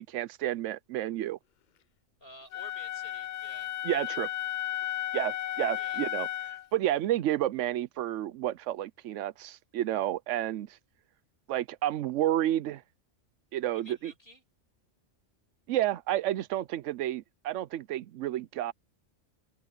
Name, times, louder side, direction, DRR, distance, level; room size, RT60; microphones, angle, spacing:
voice 1, 0.0-1.4 3.8-4.3 5.1-6.3 6.7-10.8 11.5-12.8 13.5-14.1 15.7-18.7, right 13 dB, 75° right, 0.9 m, -30 dB
voice 2, 2.2-3.7 5.8-6.0 13.7-14.4, left 1 dB, 45° left, 6.5 m, -52 dB
Wind instrument woodwind instrument, 2.5-6.7, left 12 dB, 60° left, 0.4 m, -34 dB
open air
omnidirectional pair, 1.3 m